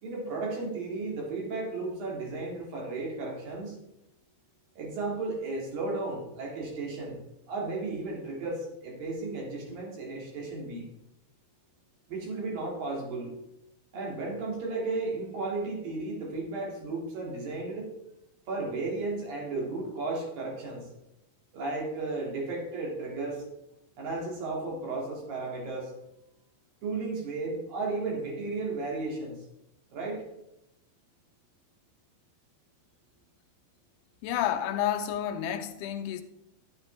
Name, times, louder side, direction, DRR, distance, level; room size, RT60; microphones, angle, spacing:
voice 1, 0.0-3.8 4.8-7.2 7.5-10.9 12.1-13.3 13.9-17.9 18.5-20.9 21.5-23.4 24.0-25.9 26.8-29.4 29.9-30.3, right 3 dB, 60° right, 3.8 m, -34 dB
voice 2, 34.2-36.2, left 10 dB, 90° left, 2.7 m, -30 dB
10.5 x 9.8 x 3.3 m
omnidirectional pair, 4.7 m